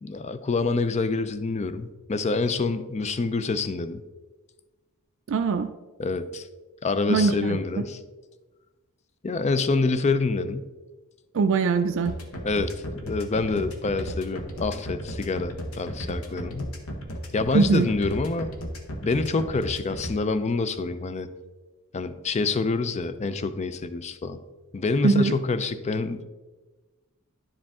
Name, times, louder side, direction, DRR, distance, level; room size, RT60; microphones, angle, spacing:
voice 1, 0.0-4.0 6.0-6.5 6.8-8.0 9.2-10.7 12.4-16.8 17.3-18.5 19.0-21.3 21.9-24.4 24.7-26.3, left 3 dB, 30° left, 12 dB, 0.4 m, -27 dB
voice 2, 5.3-5.7 7.1-7.8 11.3-12.1 17.5-17.9 25.0-25.3, right 4 dB, 60° right, 7 dB, 0.4 m, -22 dB
sound 1, 12.1-20.1, equal, 75° left, 1.1 m, -35 dB
10.5 x 4.9 x 3.6 m, 1.2 s
head